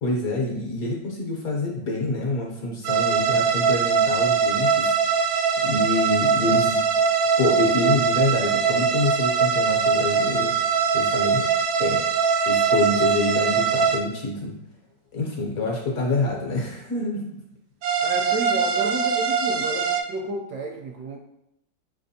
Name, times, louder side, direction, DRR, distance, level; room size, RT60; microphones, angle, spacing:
voice 1, 0.0-6.8 7.4-10.5 10.9-11.5 11.8-12.1 12.5-14.5 15.1-17.3, left 2 dB, 60° left, -1 dB, 1.0 m, -26 dB
sound 1, 2.8-14.0 17.8-20.0, right 6 dB, 90° right, 1.3 m, -22 dB
voice 2, 18.0-21.2, right 3 dB, 75° right, 0 dB, 1.0 m, -31 dB
5.3 x 3.4 x 2.7 m, 0.81 s
omnidirectional pair, 2.0 m